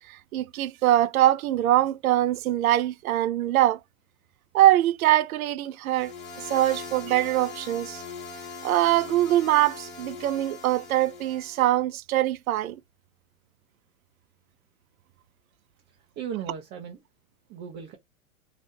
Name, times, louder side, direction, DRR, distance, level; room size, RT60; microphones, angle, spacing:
voice 1, 0.1-3.8 4.5-6.1 6.5-8.0 8.6-12.8, right 14 dB, 80° right, 0.5 m, -23 dB
sound 1, 5.9-11.7, left 4 dB, 25° left, 0.7 m, -41 dB
voice 2, 15.9-17.0 17.5-18.0, right 8 dB, 25° right, 0.5 m, -37 dB
2.7 x 2.4 x 3.6 m
hypercardioid pair, 125°, 42 cm